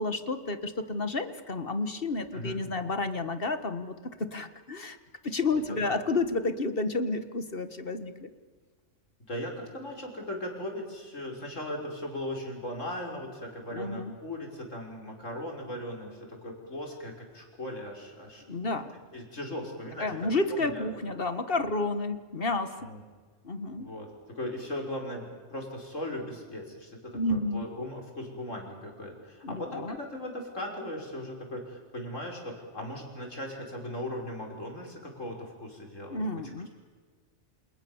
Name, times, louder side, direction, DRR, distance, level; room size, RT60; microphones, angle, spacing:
voice 1, 0.0-5.0 5.2-8.3 13.7-14.1 18.5-18.9 20.0-22.9 23.4-23.9 27.1-27.6 29.4-30.0 36.1-36.7, left 2 dB, 50° left, 10 dB, 1.8 m, -31 dB
voice 2, 5.7-6.0 9.3-18.5 19.1-21.2 22.8-23.0 23.8-24.1 24.3-36.2, left 1 dB, 80° left, 1 dB, 6.1 m, -38 dB
29.0 x 28.0 x 7.3 m, 1.5 s
omnidirectional pair, 1.3 m